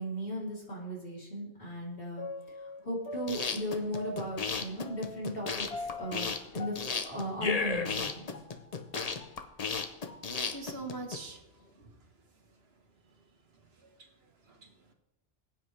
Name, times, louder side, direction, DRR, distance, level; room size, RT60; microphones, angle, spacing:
voice 1, 0.0-2.3 2.8-8.3, equal, 55° left, -5 dB, 3.6 m, -37 dB
sound 1, 2.2-9.4 9.9-11.2 11.6-11.7, left 3 dB, 75° left, 1.4 m, -45 dB
sound 2, 3.1-11.2, left 5 dB, 40° left, 0.8 m, -34 dB
voice 2, 10.3-11.4 11.8-11.9 13.8-14.1 14.5-14.9, right 3 dB, 65° right, 4 dB, 1.6 m, -43 dB
20.5 x 9.0 x 3.3 m, 0.96 s
omnidirectional pair, 1.1 m